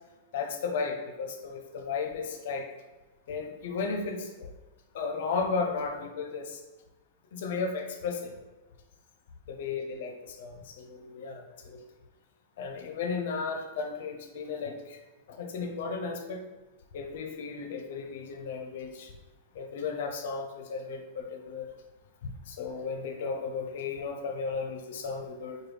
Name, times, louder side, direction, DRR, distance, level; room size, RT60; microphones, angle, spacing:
voice 1, 0.3-2.7 3.3-4.5 4.9-6.6 7.3-8.3 9.5-11.8 12.6-15.0 15.3-16.4 16.9-19.1 19.5-21.7 22.2-25.6, left 4 dB, 70° left, 4 dB, 0.6 m, -34 dB
4.7 x 2.3 x 3.2 m, 1.2 s
hypercardioid pair, 135°, 0 cm